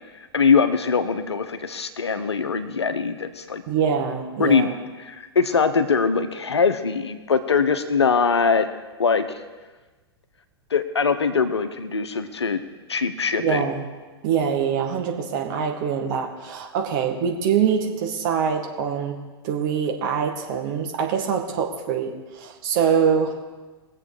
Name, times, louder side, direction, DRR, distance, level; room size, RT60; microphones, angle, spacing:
voice 1, 0.3-3.6 4.4-4.7 5.0-8.7 9.0-9.4 10.7-12.6 12.9-13.6, left 5 dB, 75° left, 9 dB, 1.0 m, -22 dB
voice 2, 3.7-4.8 13.4-13.9 14.2-23.4, right 7 dB, 45° right, 3 dB, 2.0 m, -24 dB
21.0 x 7.7 x 5.0 m, 1.3 s
figure-of-eight pair, 100°, 14 cm